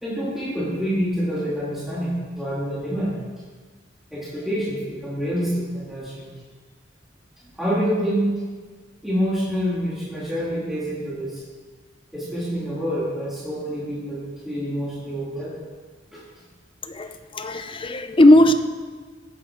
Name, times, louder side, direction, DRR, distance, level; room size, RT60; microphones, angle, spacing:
voice 1, 0.0-3.1 4.1-6.3 7.6-8.3 9.0-11.4 12.1-15.6 16.1-16.2, equal, ahead, -8 dB, 2.4 m, -27 dB
voice 2, 16.8-18.5, left 1 dB, 25° left, 8 dB, 0.7 m, -17 dB
16.5 x 7.8 x 5.1 m, 1.5 s
head